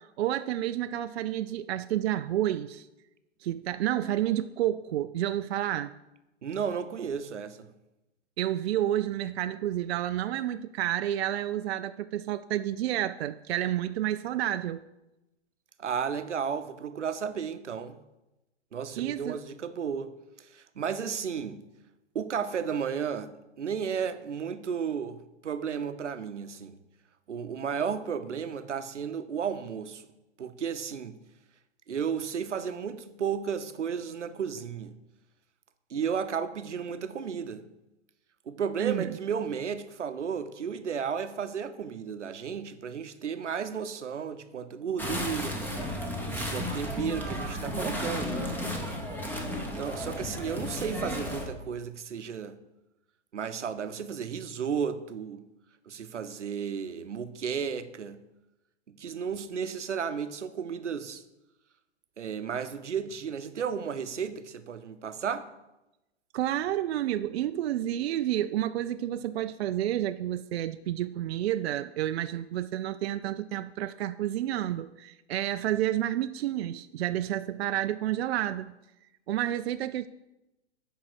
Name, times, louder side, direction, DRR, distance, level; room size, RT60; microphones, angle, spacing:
voice 1, 0.0-2.9 3.4-5.9 8.4-14.8 19.0-19.4 38.8-39.2 66.3-78.7 79.3-80.1, right 12 dB, 65° right, 0.5 m, -30 dB
voice 2, 6.4-7.7 15.8-18.0 18.7-20.1 20.4-21.6 22.1-26.8 27.3-30.0 30.4-31.2 31.9-34.9 35.9-37.6 38.5-45.6 46.3-48.5 49.5-52.6 53.3-55.4 55.9-58.2 59.0-61.2 62.2-65.5, right 7 dB, 85° right, 0.8 m, -33 dB
sound 1, 45.0-51.5, left 1 dB, 5° left, 1.3 m, -33 dB
8.5 x 5.5 x 6.6 m
hypercardioid pair, 120°, 35 cm